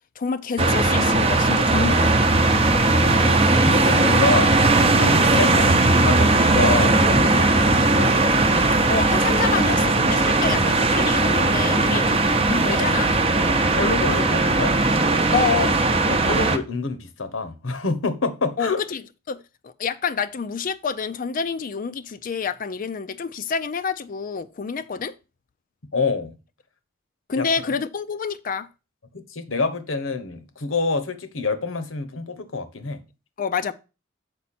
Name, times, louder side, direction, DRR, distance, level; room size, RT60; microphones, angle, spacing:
voice 1, 0.2-2.4 8.9-13.1 15.3-15.8 18.6-19.0 19.3-25.1 27.3-28.7 33.4-33.7, left 5 dB, 45° left, 0.4 m, -27 dB
sound 1, 0.6-16.6, right 2 dB, 30° right, 0.7 m, -18 dB
voice 2, 3.0-3.4 3.6-4.6 5.0-8.1 13.7-14.7 16.1-18.8 25.9-26.4 27.4-27.5 29.1-33.0, left 3 dB, 85° left, 1.1 m, -27 dB
7.0 x 5.3 x 4.2 m
head